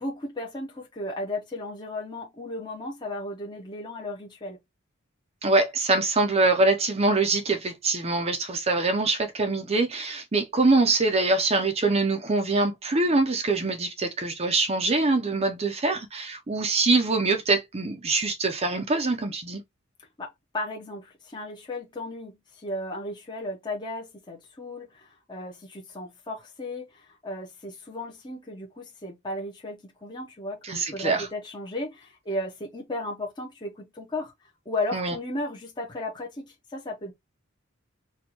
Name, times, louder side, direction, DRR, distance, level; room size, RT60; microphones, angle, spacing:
voice 1, 0.0-4.6 20.2-34.3 34.7-37.1, left 1 dB, 20° left, 0.8 m, -35 dB
voice 2, 5.4-19.6 30.6-31.3 34.9-35.1, right 3 dB, 30° right, 0.6 m, -24 dB
4.3 x 2.4 x 2.8 m
head